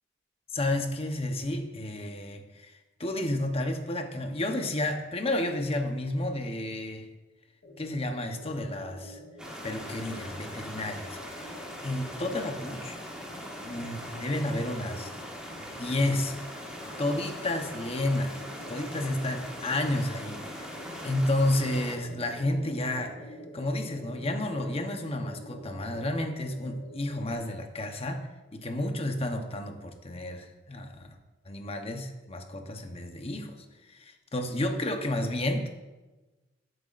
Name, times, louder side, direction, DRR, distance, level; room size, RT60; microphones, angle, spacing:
voice 1, 0.5-2.7 3.0-7.1 7.8-9.2 9.6-11.3 11.8-13.0 13.6-15.1 15.6-16.4 17.0-18.4 18.7-23.2 23.5-28.3 28.5-31.2 31.4-35.7, left 1 dB, 30° left, 5 dB, 0.9 m, -31 dB
sound 1, 7.6-27.4, left 1 dB, 80° left, 1.8 m, -47 dB
sound 2, 9.4-22.0, equal, 5° right, 1.4 m, -41 dB
13.0 x 7.8 x 2.5 m, 1.1 s
head